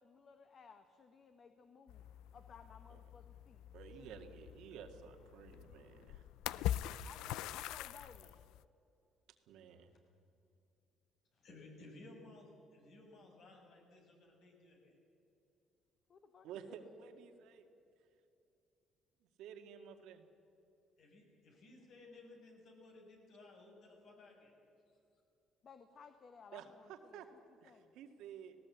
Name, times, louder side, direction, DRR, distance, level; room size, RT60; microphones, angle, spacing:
voice 1, 0.0-2.0 2.3-3.6 4.0-4.4 7.0-8.4 16.1-16.9 25.6-27.4 27.6-28.0, left 5 dB, 45° left, 8 dB, 1.3 m, -59 dB
sound 1, 1.9-8.6, left 12 dB, 85° left, 0.4 m, -44 dB
voice 2, 3.7-6.3 8.0-8.1 9.5-9.9 16.4-17.7 19.4-20.3 26.5-27.3 27.6-28.6, right 8 dB, 80° right, 6 dB, 1.9 m, -52 dB
voice 3, 11.4-14.9 21.0-24.5, left 2 dB, 65° left, 1 dB, 6.1 m, -58 dB
18.0 x 17.5 x 8.3 m, 2.7 s
cardioid pair, 100°, 0 cm